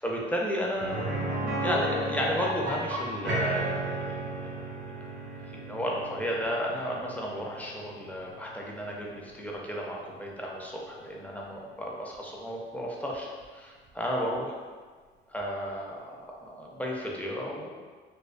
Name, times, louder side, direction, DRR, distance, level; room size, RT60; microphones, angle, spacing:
voice 1, 0.0-4.7 5.0-5.2 5.5-13.3 13.5-14.6 15.3-17.8, equal, 5° left, -3 dB, 0.4 m, -33 dB
sound 1, 0.8-10.6 10.9-11.0 13.4-13.5, right 1 dB, 65° right, 0.6 m, -34 dB
2.3 x 2.2 x 2.4 m, 1.5 s
cardioid pair, 90°, 20 cm